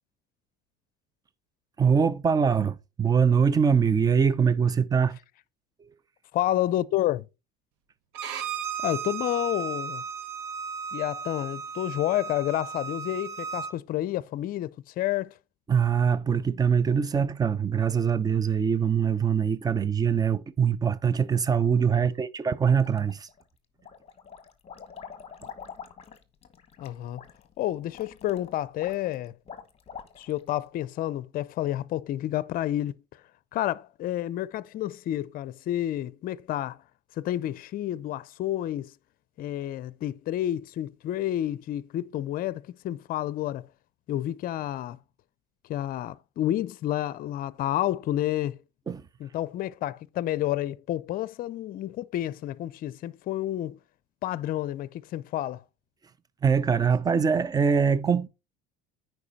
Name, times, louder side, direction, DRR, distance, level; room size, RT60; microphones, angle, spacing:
voice 1, 1.8-5.2 15.7-23.3 48.9-49.0 56.4-58.3, right 6 dB, 20° right, 0.6 m, -23 dB
voice 2, 6.3-7.3 8.8-10.0 10.9-15.3 22.0-22.1 26.8-27.2 27.6-29.3 30.2-33.0 33.5-36.8 37.2-38.9 39.4-43.7 44.1-45.0 45.7-48.6 49.2-53.8 54.2-55.6, left 13 dB, 45° left, 0.6 m, -30 dB
Bowed string instrument, 8.1-13.7, right 6 dB, 75° right, 1.6 m, -35 dB
sound 1, 22.6-23.4 23.8-30.5, left 7 dB, 30° left, 1.3 m, -45 dB
9.6 x 4.6 x 4.1 m
supercardioid pair, 110°, 20 cm